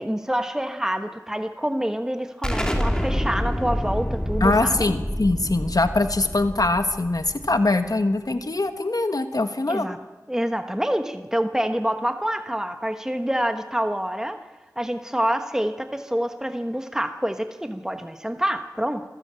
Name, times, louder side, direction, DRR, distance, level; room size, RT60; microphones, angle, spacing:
voice 1, 0.0-4.9 9.7-10.0 10.3-14.4 14.8-19.0, equal, 10° right, 7 dB, 1.2 m, -27 dB
Explosion, 2.4-7.9, equal, 10° left, 3.0 m, -27 dB
voice 2, 4.4-9.9, left 2 dB, 75° left, 8 dB, 1.4 m, -22 dB
25.5 x 14.5 x 8.9 m, 1.2 s
wide cardioid pair, 45°, 6 cm